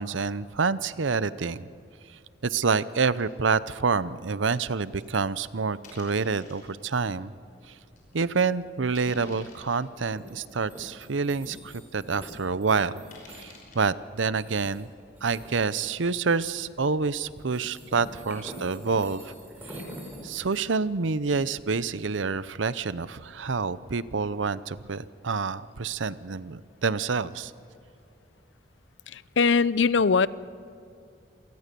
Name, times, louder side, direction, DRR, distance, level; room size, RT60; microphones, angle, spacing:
voice 1, 0.0-1.7 2.4-7.3 7.7-7.8 8.1-12.9 13.4-14.9 15.2-19.3 19.6-19.8 20.2-27.5, right 4 dB, 85° right, 17 dB, 0.7 m, -27 dB
sound 1, 3.1-3.3 3.9-4.0 5.0-5.2 5.8-6.7 7.3-7.4 8.0-8.2 8.9-9.9 10.5-10.6 11.1-11.2 11.4-11.5 13.1-13.8, left 3 dB, 45° left, 5.4 m, -50 dB
sound 2, 7.9-24.3, equal, 10° right, 5.2 m, -47 dB
voice 2, 29.1-30.3, left 5 dB, 75° left, 19 dB, 0.6 m, -21 dB
27.5 x 19.0 x 6.9 m, 2.5 s
head